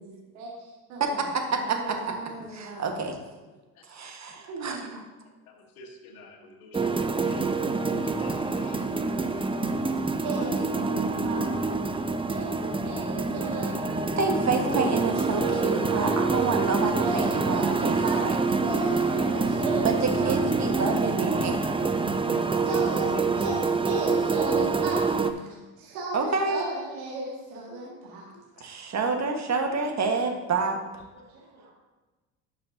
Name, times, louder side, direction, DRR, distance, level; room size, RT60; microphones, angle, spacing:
voice 1, 0.4-1.3 1.6-3.0 4.5-5.0 10.2-11.5 12.3-14.0 14.4-15.1 15.4-16.1 17.0-18.2 18.6-20.4 22.7-23.1 23.4-25.0 25.5-28.3 31.1-31.7, right 3 dB, 80° right, -4 dB, 2.1 m, -35 dB
voice 2, 1.0-2.1 2.5-3.2 3.9-5.0 14.2-18.4 19.8-21.7 26.1-26.6 28.6-30.8, right 4 dB, 40° right, 4 dB, 1.6 m, -28 dB
voice 3, 5.8-6.9 7.3-7.6 8.0-9.5 22.0-22.6, left 2 dB, 85° left, 2 dB, 1.6 m, -48 dB
sound 1, 6.7-25.3, right 4 dB, 10° right, 0.6 m, -26 dB
11.5 x 6.5 x 2.8 m, 1.2 s
hypercardioid pair, 65°, 42 cm